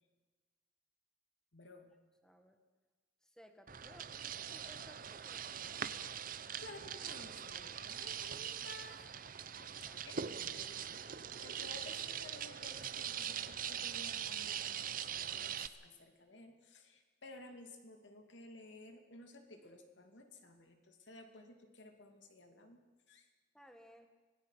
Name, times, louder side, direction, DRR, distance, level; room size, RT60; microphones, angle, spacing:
voice 1, 1.5-1.9 6.6-9.0 10.0-22.8 23.1-23.3, left 2 dB, 80° left, 5 dB, 2.7 m, -55 dB
voice 2, 2.2-2.6 3.2-5.9 9.6-10.0 23.5-24.1, equal, 5° left, 5 dB, 1.9 m, -61 dB
sound 1, 3.7-15.7, right 8 dB, 45° right, 0.8 m, -42 dB
25.5 x 19.5 x 5.8 m, 1.3 s
head